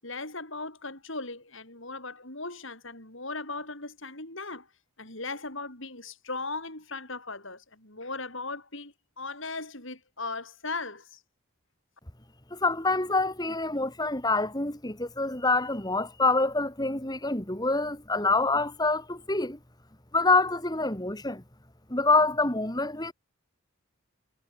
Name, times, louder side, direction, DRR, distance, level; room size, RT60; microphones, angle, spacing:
voice 1, 0.0-4.7 5.0-11.2, left 3 dB, 60° left, 7.6 m, -38 dB
voice 2, 12.5-19.6 20.1-21.4 21.9-23.1, left 3 dB, 20° left, 2.4 m, -26 dB
head